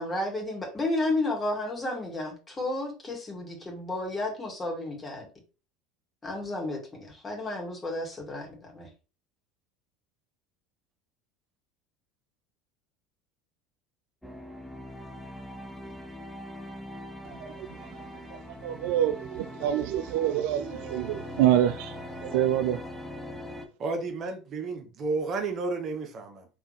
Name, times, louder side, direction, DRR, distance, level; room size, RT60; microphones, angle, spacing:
voice 1, 0.0-5.3 6.2-8.9, left 2 dB, 20° left, 2.2 m, -32 dB
sound 1, 14.2-23.7, left 1 dB, 5° left, 0.9 m, -42 dB
voice 2, 17.2-18.0 18.3-22.8, right 11 dB, 65° right, 0.3 m, -27 dB
voice 3, 23.8-26.6, right 3 dB, 45° right, 1.1 m, -32 dB
3.7 x 3.3 x 3.2 m
hypercardioid pair, 75°, 0 cm